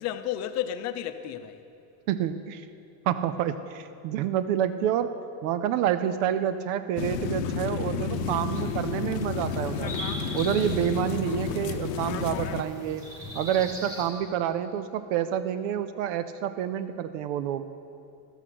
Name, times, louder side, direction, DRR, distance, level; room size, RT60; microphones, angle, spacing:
voice 1, 0.0-1.6, left 11 dB, 45° left, 0.6 m, -32 dB
voice 2, 2.1-2.7 3.0-10.0 10.3-13.0 13.3-17.7, right 10 dB, 75° right, 0.6 m, -28 dB
sound 1, 7.0-12.6, left 5 dB, 80° left, 0.8 m, -31 dB
sound 2, 8.1-14.1, equal, 10° right, 1.6 m, -41 dB
12.5 x 8.1 x 5.9 m
cardioid pair, 150°, 38 cm